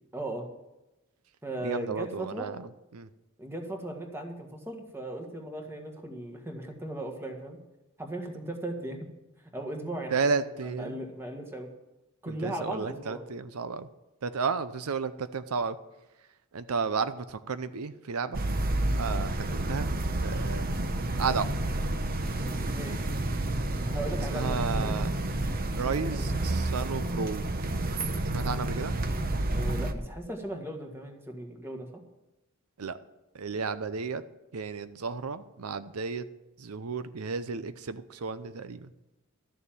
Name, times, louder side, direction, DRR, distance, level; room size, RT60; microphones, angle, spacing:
voice 1, 0.1-0.5 1.4-2.5 3.4-7.6 8.0-9.1 9.4-11.7 12.2-13.2 22.4-23.0 23.9-25.0 25.9-26.4 29.5-32.0, right 1 dB, 10° right, 3 dB, 1.7 m, -37 dB
voice 2, 1.6-2.7 2.9-3.1 10.1-11.0 12.3-13.9 14.2-15.8 16.5-18.4 19.0-19.9 20.2-20.7 21.2-21.5 24.3-25.1 25.7-27.6 28.3-28.9 32.8-33.0 33.3-34.2 34.5-36.2 36.6-38.9, right 5 dB, 90° right, 12 dB, 0.6 m, -32 dB
sound 1, 18.3-29.9, right 1 dB, 45° right, 0.9 m, -30 dB
13.0 x 6.9 x 9.0 m, 1.0 s
head